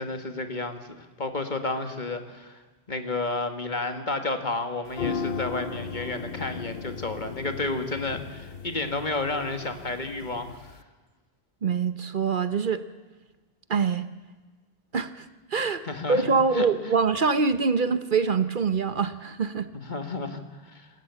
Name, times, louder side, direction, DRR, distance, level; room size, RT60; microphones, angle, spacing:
voice 1, 0.0-2.6 2.9-10.8 15.8-16.9 19.7-20.9, left 3 dB, 45° left, 7 dB, 1.9 m, -31 dB
sound 1, 4.9-10.8, left 5 dB, 65° left, 1.0 m, -36 dB
voice 2, 11.6-12.8 13.7-14.1 14.9-15.3 15.5-19.7, right 5 dB, 55° right, 12 dB, 1.0 m, -24 dB
27.0 x 14.0 x 8.3 m, 1.3 s
omnidirectional pair, 1.1 m